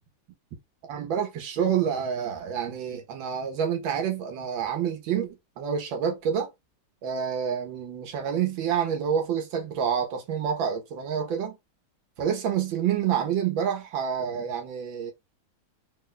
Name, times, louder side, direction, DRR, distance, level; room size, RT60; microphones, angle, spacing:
voice 1, 0.9-6.5 7.0-11.6 12.2-15.1, right 8 dB, 85° right, 1.6 m, -28 dB
3.9 x 2.2 x 3.9 m
omnidirectional pair, 2.1 m